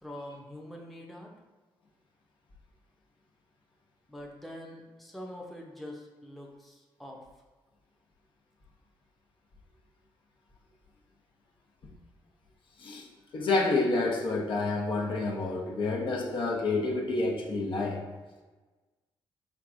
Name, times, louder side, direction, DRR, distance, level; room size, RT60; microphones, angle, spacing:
voice 1, 0.0-1.3 4.1-7.2, left 1 dB, ahead, -1 dB, 0.7 m, -44 dB
voice 2, 13.3-18.0, left 3 dB, 60° left, -1 dB, 0.7 m, -28 dB
4.6 x 3.4 x 2.5 m, 1.3 s
cardioid pair, 85°, 10 cm